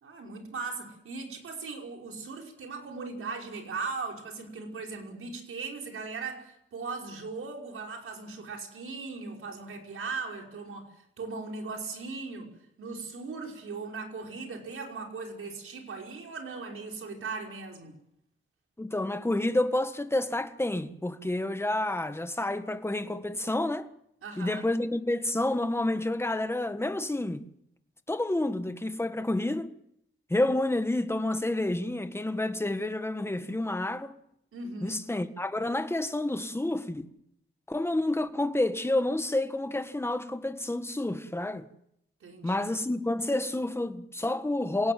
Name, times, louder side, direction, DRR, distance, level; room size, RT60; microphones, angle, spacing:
voice 1, 0.0-10.9 11.2-12.5 12.8-18.0 24.2-24.6 34.5-35.0 42.2-42.6, right 4 dB, 85° right, 5.5 m, -38 dB
voice 2, 18.8-23.9 24.4-27.4 28.1-29.7 30.3-34.2 34.8-37.1 37.7-41.7 42.4-44.9, left 1 dB, 10° left, 1.6 m, -29 dB
27.5 x 18.0 x 7.8 m
wide cardioid pair, 105°, 21 cm